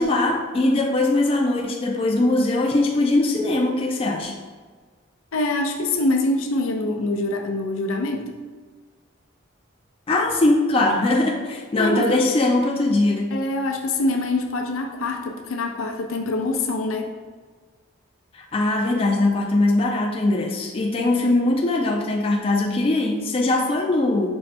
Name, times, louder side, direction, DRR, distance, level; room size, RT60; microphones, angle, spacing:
voice 1, 0.0-4.4 10.1-13.4 18.3-24.4, left 2 dB, 25° left, 1 dB, 0.3 m, -21 dB
voice 2, 5.3-8.3 11.7-12.1 13.3-17.1 21.2-21.3, left 2 dB, 85° left, 3 dB, 0.5 m, -25 dB
5.4 x 2.1 x 4.1 m, 1.4 s
head